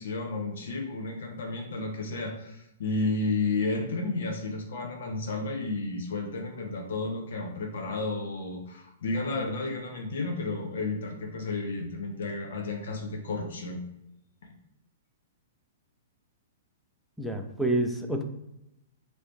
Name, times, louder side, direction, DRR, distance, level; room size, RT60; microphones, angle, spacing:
voice 1, 0.0-13.8, left 3 dB, 75° left, 4 dB, 0.6 m, -32 dB
voice 2, 17.2-18.2, right 1 dB, ahead, 4 dB, 0.4 m, -28 dB
3.0 x 2.7 x 3.1 m, 0.86 s
hypercardioid pair, 135°, 0 cm